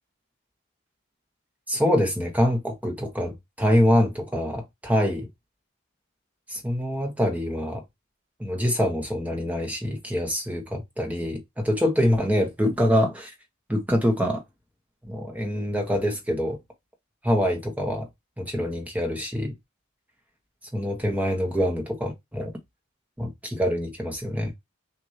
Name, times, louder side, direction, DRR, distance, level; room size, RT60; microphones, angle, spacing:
voice 1, 1.7-5.3 6.5-7.8 8.4-13.3 13.7-14.4 15.1-16.6 17.2-18.1 18.4-19.5 20.7-22.5 23.2-24.5, equal, 5° right, 1.0 m, -25 dB
6.1 x 2.6 x 2.7 m
head